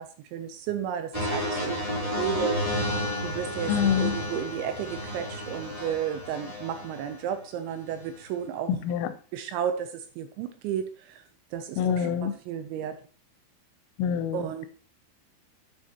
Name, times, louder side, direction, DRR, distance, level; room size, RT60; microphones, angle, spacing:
voice 1, 0.0-2.6 3.2-8.7 9.3-11.2 11.5-13.0 14.3-14.7, right 9 dB, 80° right, 8 dB, 2.8 m, -33 dB
sound 1, 1.1-7.2 7.9-8.1, left 1 dB, 10° right, 2.2 m, -31 dB
voice 2, 3.7-4.1 8.9-9.1 11.8-12.3 14.0-14.4, left 8 dB, 85° left, 10 dB, 3.2 m, -25 dB
9.5 x 7.3 x 2.9 m, 0.36 s
omnidirectional pair, 5.7 m